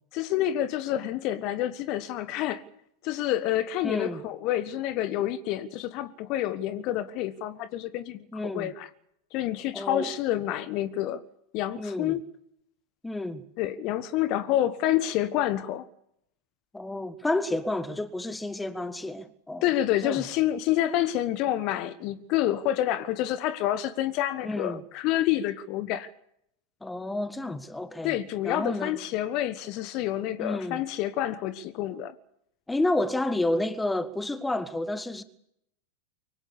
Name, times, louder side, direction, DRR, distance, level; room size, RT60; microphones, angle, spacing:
voice 1, 0.1-2.6 3.0-8.9 9.3-11.2 11.5-12.2 13.6-15.8 19.6-26.1 28.0-32.1, left 12 dB, 40° left, 1.3 m, -28 dB
voice 2, 3.8-4.2 8.3-8.7 9.7-10.1 11.7-12.2 13.0-13.4 16.7-19.6 20.0-20.2 24.4-24.8 26.8-28.2 28.4-29.0 30.4-30.8 32.7-35.2, left 2 dB, 5° left, 1.6 m, -30 dB
24.5 x 17.0 x 8.2 m
figure-of-eight pair, 90°, 0 cm